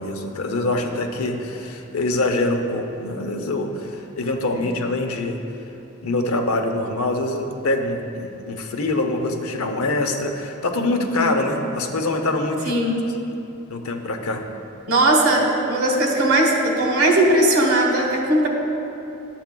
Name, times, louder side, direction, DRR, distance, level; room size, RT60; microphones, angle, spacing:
voice 1, 0.0-5.4 6.0-12.7 13.7-14.4, left 2 dB, 80° left, 4 dB, 0.7 m, -24 dB
voice 2, 12.6-13.0 14.9-18.5, right 1 dB, 75° right, 1 dB, 1.3 m, -19 dB
11.5 x 8.2 x 2.2 m, 2.8 s
head